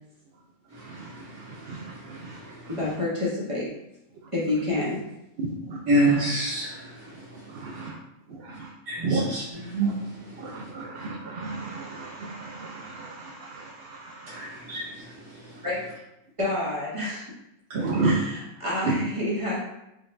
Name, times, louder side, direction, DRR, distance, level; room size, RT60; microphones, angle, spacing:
voice 1, 0.7-2.9 5.4-6.2 7.3-8.0 8.3-8.7 9.0-9.2 9.8-9.9 10.4-14.6 17.7-18.1 18.9-19.0, right 3 dB, 65° right, 0.6 m, -33 dB
voice 2, 2.7-3.7 4.3-5.1 15.6-15.8 16.4-17.2 18.0-19.6, left 2 dB, 25° right, 0.9 m, -28 dB
voice 3, 5.9-7.2 8.9-9.4 9.7-10.0 14.3-15.1, right 1 dB, 90° right, 1.6 m, -26 dB
4.5 x 2.4 x 3.1 m
omnidirectional pair, 1.4 m